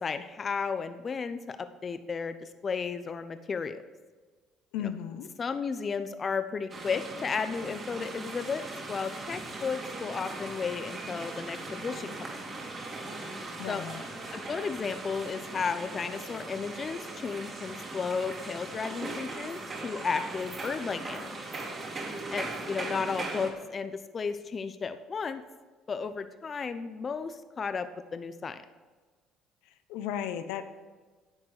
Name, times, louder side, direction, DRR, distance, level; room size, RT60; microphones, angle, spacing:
voice 1, 0.0-3.8 5.4-8.6 8.9-12.5 13.7-13.8 14.3-21.4 22.3-25.4 25.9-28.6, left 5 dB, 35° left, 10 dB, 0.7 m, -34 dB
voice 2, 4.7-5.3 13.6-14.0 29.9-30.6, left 9 dB, 85° left, 9 dB, 0.9 m, -35 dB
sound 1, 6.7-23.5, right 2 dB, 30° right, 2.7 m, -39 dB
10.5 x 8.7 x 6.6 m, 1.4 s
cardioid pair, 100°, 0 cm